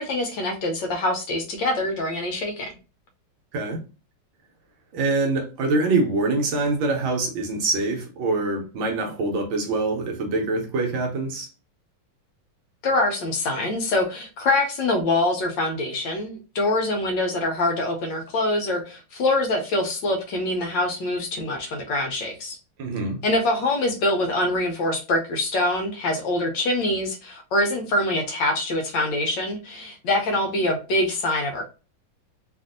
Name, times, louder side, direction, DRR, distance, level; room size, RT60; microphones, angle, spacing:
voice 1, 0.0-2.7 12.8-22.6 23.2-31.6, left 2 dB, 75° left, 1.2 m, -24 dB
voice 2, 4.9-11.5 22.8-23.2, right 3 dB, 75° right, 1.5 m, -24 dB
3.4 x 2.5 x 2.5 m
omnidirectional pair, 2.3 m